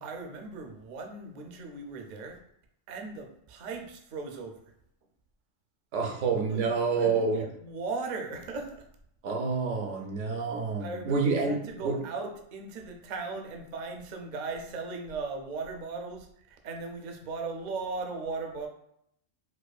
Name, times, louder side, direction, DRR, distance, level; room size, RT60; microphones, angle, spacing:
voice 1, 0.0-2.4 2.9-4.6 6.5-6.7 7.0-8.8 10.8-18.7, right 4 dB, 55° right, 3 dB, 0.5 m, -38 dB
voice 2, 5.9-7.5 9.2-12.0, right 4 dB, 80° right, 3 dB, 1.0 m, -28 dB
4.5 x 2.3 x 2.3 m, 0.73 s
omnidirectional pair, 1.2 m